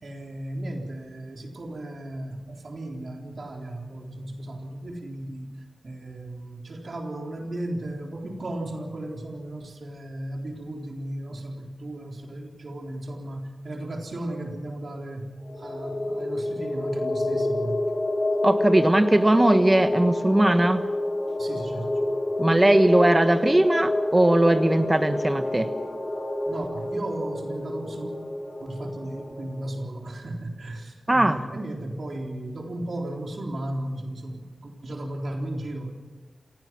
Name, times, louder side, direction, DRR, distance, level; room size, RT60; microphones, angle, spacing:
voice 1, 0.0-5.6 5.8-17.8 21.4-22.1 26.5-28.1 28.6-35.9, right 1 dB, 70° right, 1 dB, 3.9 m, -35 dB
sound 1, 15.4-29.7, left 1 dB, 45° left, 6.1 m, -28 dB
voice 2, 18.4-20.8 22.4-25.7 31.1-31.4, right 1 dB, 25° right, 9 dB, 1.3 m, -19 dB
28.0 x 17.5 x 6.1 m, 1.2 s
wide cardioid pair, 65°, 0 cm